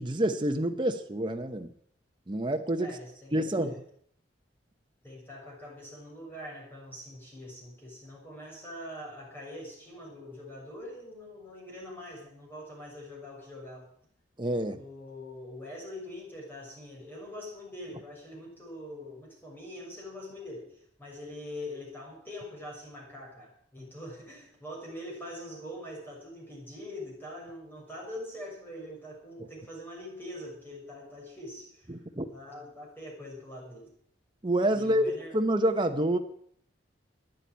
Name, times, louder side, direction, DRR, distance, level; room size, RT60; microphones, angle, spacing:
voice 1, 0.0-1.7 2.3-3.0 3.3-3.8 14.4-14.8 29.4-29.5 31.9-32.2 34.4-35.0 35.3-36.2, right 1 dB, 25° right, 5 dB, 0.9 m, -28 dB
voice 2, 2.8-3.8 5.0-13.9 14.7-32.0 32.3-33.9 34.7-35.4, left 1 dB, 10° left, -3 dB, 6.6 m, -43 dB
13.0 x 10.0 x 9.2 m, 0.65 s
head